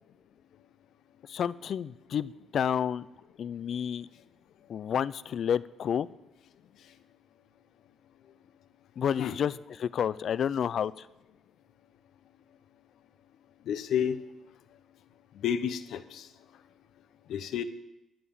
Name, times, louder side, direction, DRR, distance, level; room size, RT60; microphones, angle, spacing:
voice 1, 1.3-3.1 3.4-4.1 4.7-6.1 9.0-9.5 9.8-11.1, left 8 dB, 60° left, 18 dB, 0.4 m, -30 dB
voice 2, 13.7-14.2 15.4-16.3 17.3-17.6, left 8 dB, 75° left, 11 dB, 0.9 m, -30 dB
12.0 x 9.2 x 7.2 m, 0.95 s
cardioid pair, 90°, 0 cm